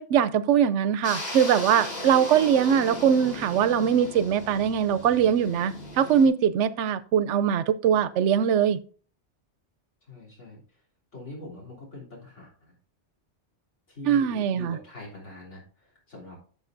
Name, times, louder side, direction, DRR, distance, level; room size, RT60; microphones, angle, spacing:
voice 1, 0.0-8.8 14.1-14.8, right 8 dB, 90° right, 0.9 m, -22 dB
sound 1, 1.0-6.3, left 1 dB, 60° left, 2.4 m, -37 dB
voice 2, 10.1-10.8 11.1-12.7 13.9-16.4, left 2 dB, 85° left, 3.8 m, -43 dB
11.5 x 6.8 x 2.6 m
omnidirectional pair, 1.2 m